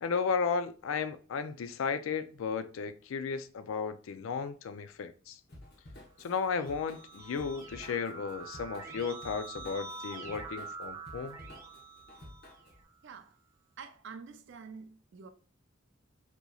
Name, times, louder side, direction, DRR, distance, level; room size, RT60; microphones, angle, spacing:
voice 1, 0.0-5.4 6.2-11.4, left 5 dB, 85° left, 0.4 m, -34 dB
Drum kit / Drum, 5.5-12.8, left 1 dB, 55° left, 1.0 m, -52 dB
Keyboard (musical), 6.3-12.9, right 4 dB, 15° right, 0.8 m, -46 dB
voice 2, 13.0-13.3 13.8-15.3, right 5 dB, 60° right, 0.4 m, -47 dB
3.8 x 2.9 x 2.3 m
head